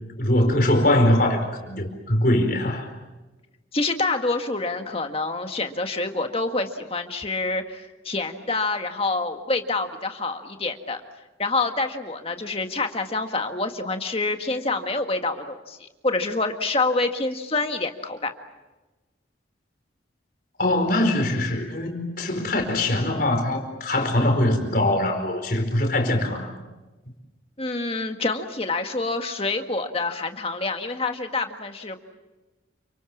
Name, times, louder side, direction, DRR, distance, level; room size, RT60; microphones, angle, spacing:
voice 1, 0.2-2.9 20.6-26.5, left 1 dB, 50° left, 4 dB, 4.7 m, -22 dB
voice 2, 3.7-11.0 11.4-18.3 27.6-32.0, left 3 dB, 30° left, 5 dB, 1.8 m, -27 dB
29.0 x 26.0 x 7.4 m, 1.1 s
head